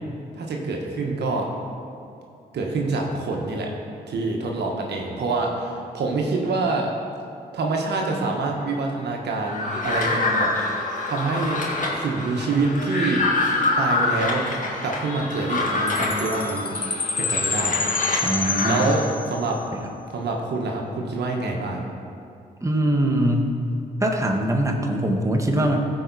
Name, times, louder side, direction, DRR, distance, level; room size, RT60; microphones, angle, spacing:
voice 1, 0.4-1.5 2.5-3.7 4.1-6.9 7.5-10.5 11.1-11.6 12.0-13.3 13.8-14.5 14.8-16.7 17.2-17.9 18.6-19.6 20.1-21.9, right 3 dB, 70° right, 0 dB, 1.2 m, -26 dB
sound 1, 9.5-18.9, left 2 dB, 45° left, 2.0 m, -26 dB
Chime, 15.9-19.6, left 4 dB, 30° left, 0.7 m, -28 dB
voice 2, 18.2-18.9 22.6-23.5 24.0-25.8, right 1 dB, 15° right, 2 dB, 1.4 m, -22 dB
14.5 x 4.9 x 4.1 m, 2.5 s
supercardioid pair, 45°, 18 cm